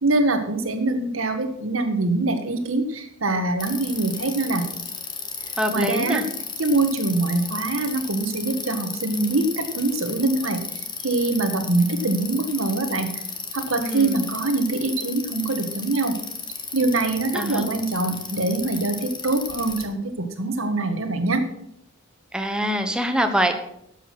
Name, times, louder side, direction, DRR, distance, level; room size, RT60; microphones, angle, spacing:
voice 1, 0.0-4.6 5.7-6.2 6.6-13.1 13.5-16.2 16.7-21.5, right 2 dB, 85° right, 7 dB, 1.7 m, -24 dB
Bicycle, 3.6-19.8, left 5 dB, 20° left, 1.5 m, -34 dB
voice 2, 5.6-6.2 13.8-14.2 17.3-17.7 22.3-23.5, equal, 5° right, 5 dB, 1.1 m, -24 dB
12.0 x 8.1 x 6.2 m, 0.75 s
head